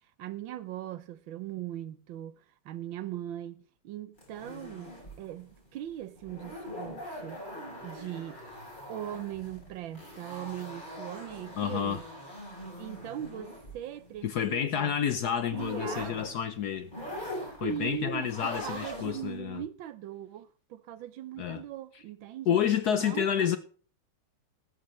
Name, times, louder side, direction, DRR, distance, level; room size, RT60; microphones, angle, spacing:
voice 1, 0.2-2.3 2.6-7.4 7.8-8.4 8.9-12.0 12.8-15.0 15.5-16.2 17.6-22.6 22.9-23.5, right 12 dB, 75° right, 1.4 m, -40 dB
sound 1, 4.2-19.4, equal, 20° left, 5.9 m, -43 dB
voice 2, 11.6-12.0 14.2-16.9 17.6-19.6 21.4-21.6 22.5-23.6, left 9 dB, 60° left, 1.1 m, -29 dB
14.5 x 11.5 x 3.2 m
omnidirectional pair, 2.3 m